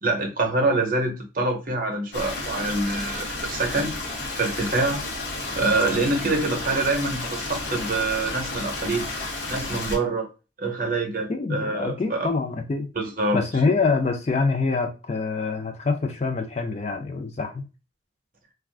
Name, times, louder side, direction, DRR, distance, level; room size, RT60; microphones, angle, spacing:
voice 1, 0.0-3.9 4.3-5.0 5.5-9.1 9.5-10.3 10.6-12.3 12.9-13.4, right 2 dB, 45° right, 0.7 m, -25 dB
Stream, 2.1-10.0, left 2 dB, 60° left, 0.9 m, -32 dB
voice 2, 11.3-12.9 13.3-17.6, left 4 dB, 35° left, 0.4 m, -25 dB
3.4 x 2.3 x 2.4 m
head